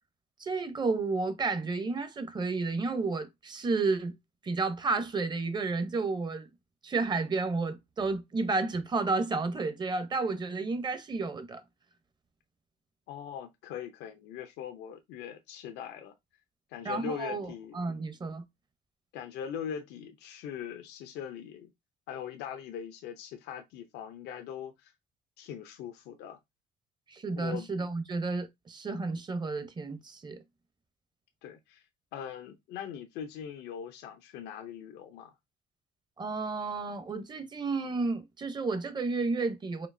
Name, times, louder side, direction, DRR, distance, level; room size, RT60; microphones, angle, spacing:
voice 1, 0.4-4.1 4.4-6.5 6.8-11.6 16.8-17.5 17.7-18.4 27.1-30.4 36.2-39.9, right 3 dB, 25° right, 0.7 m, -31 dB
voice 2, 13.1-16.1 16.7-17.8 19.1-21.7 22.1-24.9 25.4-26.4 27.4-27.7 31.4-31.8 32.1-35.3, left 8 dB, 85° left, 0.6 m, -41 dB
4.4 x 2.7 x 2.6 m
cardioid pair, 110°, 17 cm